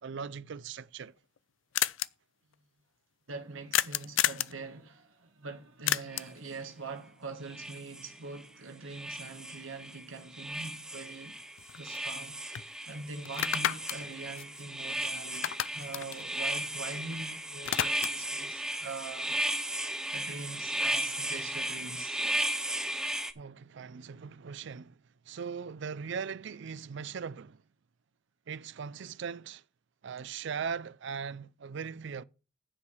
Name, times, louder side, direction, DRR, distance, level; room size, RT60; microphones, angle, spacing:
voice 1, 0.0-1.1 23.4-25.0 25.3-27.6 28.5-29.6 30.0-32.2, right 6 dB, 60° right, 0.4 m, -39 dB
sound 1, 0.8-0.9 1.1-1.2 1.4-1.5 1.7-2.1 3.7-4.6 5.9-6.4 10.6-10.7 11.1-12.2 12.5-12.7 13.2-15.0 15.3-17.1 17.4-18.3, left 12 dB, 70° left, 0.4 m, -32 dB
voice 2, 3.3-11.4 11.8-19.3 20.1-22.2, right 3 dB, 80° right, 1.4 m, -43 dB
sound 2, 6.1-6.3 7.5-8.5 8.9-10.0 10.3-23.3, right 1 dB, 5° right, 0.6 m, -35 dB
9.7 x 4.8 x 7.0 m
head